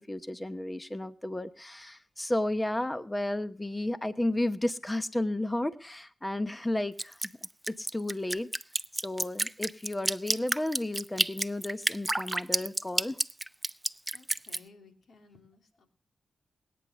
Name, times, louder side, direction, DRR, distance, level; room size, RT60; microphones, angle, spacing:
voice 1, 0.0-7.2 7.7-8.5 8.9-13.2, left 1 dB, 15° left, 12 dB, 0.9 m, -33 dB
voice 2, 6.4-6.8 14.1-15.9, left 4 dB, 75° left, 6 dB, 3.0 m, -58 dB
Drip, 7.0-14.6, right 1 dB, 10° right, 0.7 m, -30 dB
21.0 x 9.5 x 6.8 m, 0.40 s
cardioid pair, 55°, 0 cm